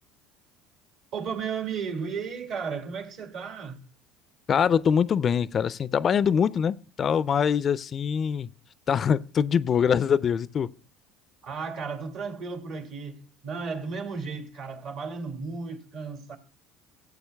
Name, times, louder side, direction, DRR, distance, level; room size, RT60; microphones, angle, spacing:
voice 1, 1.1-3.8 11.4-16.4, right 5 dB, 65° right, 2.2 m, -34 dB
voice 2, 4.5-8.5 8.9-10.7, left 7 dB, 45° left, 0.4 m, -24 dB
17.0 x 8.0 x 2.2 m
hypercardioid pair, 70°, 0 cm